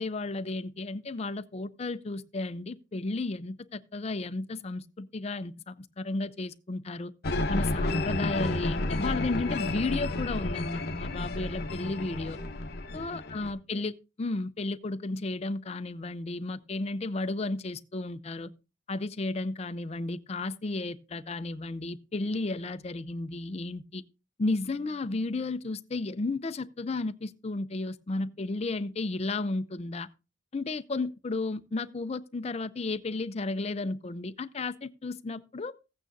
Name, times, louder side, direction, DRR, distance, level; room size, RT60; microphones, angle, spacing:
voice 1, 0.0-7.1 7.5-12.4 12.9-18.5 18.9-24.0 24.4-30.1 30.5-35.7, left 2 dB, 30° left, 0.5 m, -33 dB
sound 1, 7.2-13.5, left 2 dB, 50° left, 0.8 m, -31 dB
15.0 x 8.8 x 2.6 m
head